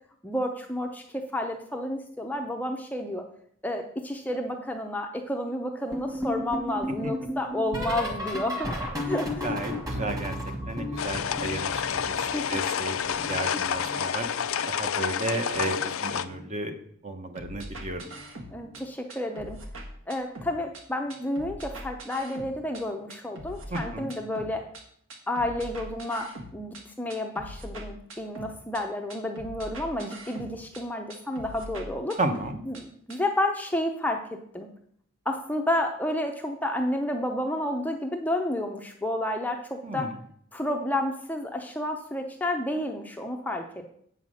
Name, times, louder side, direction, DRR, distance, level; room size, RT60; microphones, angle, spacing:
voice 1, 0.2-3.2 3.6-8.7 9.0-9.5 11.2-11.4 12.3-12.4 18.5-19.6 20.1-24.6 25.3-32.2 32.7-34.7 35.3-40.1 40.5-43.9, left 1 dB, 5° left, 3 dB, 0.6 m, -31 dB
sound 1, 5.9-12.7 13.0-14.5 15.5-15.9 16.1-16.5 18.0-18.3 18.6-18.9 20.5-20.6, left 1 dB, 15° right, 1.6 m, -34 dB
voice 2, 9.4-10.4 10.7-14.3 14.7-16.8 17.0-18.1 23.7-24.1 32.2-32.6 39.8-40.1, right 2 dB, 30° right, 7 dB, 0.9 m, -33 dB
sound 2, 11.0-16.2, left 8 dB, 70° left, 0.5 m, -29 dB
sound 3, 17.4-18.8 19.1-20.8 21.1-22.8 23.1-24.8 25.1-26.8 27.1-28.8 29.1-30.8 31.1-32.8 33.1-33.2, right 1 dB, 60° right, 1.5 m, -42 dB
8.3 x 5.7 x 6.3 m, 0.65 s
head